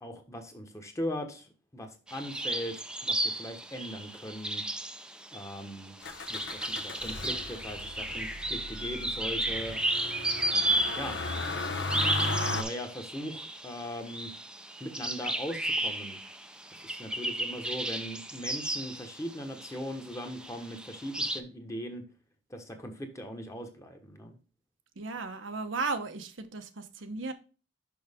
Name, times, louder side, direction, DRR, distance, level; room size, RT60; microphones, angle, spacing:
voice 1, 0.0-1.5 1.7-4.6 5.3-5.9 6.3-9.8 11.0-11.2 11.7-14.3 14.8-16.2 16.7-22.0 22.5-24.3, equal, 15° left, 1.2 m, -39 dB
sound 1, 2.1-19.8 20.1-21.4, right 1 dB, 5° right, 0.5 m, -34 dB
Motor vehicle (road), 6.0-12.6, left 2 dB, 65° left, 0.9 m, -36 dB
voice 2, 25.0-27.3, right 3 dB, 80° right, 1.0 m, -35 dB
6.3 x 5.9 x 3.6 m
head